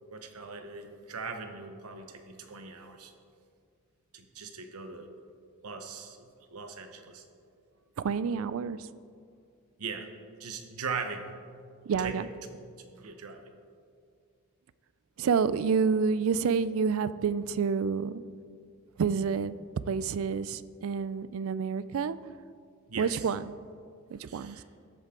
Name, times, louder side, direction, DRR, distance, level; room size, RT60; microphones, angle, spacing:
voice 1, 0.1-3.1 4.1-5.1 5.6-7.2 9.8-10.1 10.4-11.3 12.0-12.3 13.0-13.5 22.9-23.3 24.2-24.6, right 5 dB, 85° right, 6 dB, 1.0 m, -40 dB
voice 2, 8.0-8.9 11.9-12.3 15.2-18.2 19.0-19.6 19.9-22.2 23.0-23.5 24.1-24.6, right 6 dB, 65° right, 16 dB, 0.4 m, -28 dB
13.5 x 8.1 x 3.8 m, 2.3 s
head